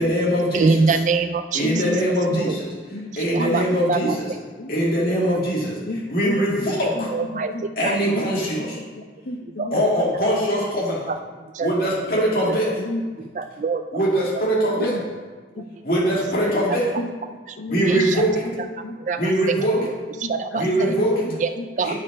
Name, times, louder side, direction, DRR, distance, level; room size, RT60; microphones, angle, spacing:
voice 1, 0.0-1.0 1.5-2.7 3.2-4.3 4.7-5.8 6.1-7.1 7.8-8.8 9.7-11.1 11.6-12.7 13.9-15.0 15.8-16.9 17.7-18.4 19.2-19.9 20.5-21.2 21.8-21.9, equal, 55° left, -4 dB, 2.4 m, -22 dB
voice 2, 0.5-1.8 2.3-2.6 3.1-4.2 5.3-5.4 6.8-7.5 7.8-8.0 9.6-9.7 11.1-11.2 11.5-11.7 12.4-12.5 13.4-13.8 17.8-18.2 19.0-19.6 20.3-21.0 21.4-21.9, right 4 dB, 40° right, 8 dB, 0.3 m, -24 dB
voice 3, 1.6-2.0 2.9-4.1 4.6-4.7 5.8-6.3 6.9-8.3 8.6-9.8 12.7-13.0 14.7-15.1 15.6-15.7 17.0-18.0 18.4-19.0 19.8-19.9 20.2-21.7, left 2 dB, 70° left, 7 dB, 0.7 m, -33 dB
8.9 x 5.3 x 5.4 m, 1.4 s
head